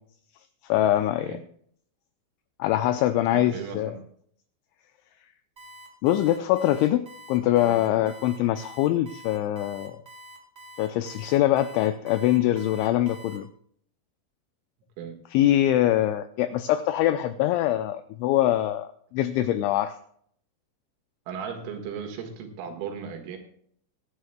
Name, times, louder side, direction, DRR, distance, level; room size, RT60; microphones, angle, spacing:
voice 1, 0.6-1.4 2.6-4.0 6.0-10.0 10.8-13.5 15.3-20.0, left 13 dB, 85° left, 10 dB, 2.7 m, -23 dB
voice 2, 3.1-4.0 7.6-7.8 15.0-15.2 21.3-23.4, right 7 dB, 85° right, 4 dB, 4.3 m, -36 dB
Alarm, 5.6-13.4, right 1 dB, 10° right, 2.5 m, -46 dB
22.5 x 10.0 x 2.2 m, 0.65 s
omnidirectional pair, 5.8 m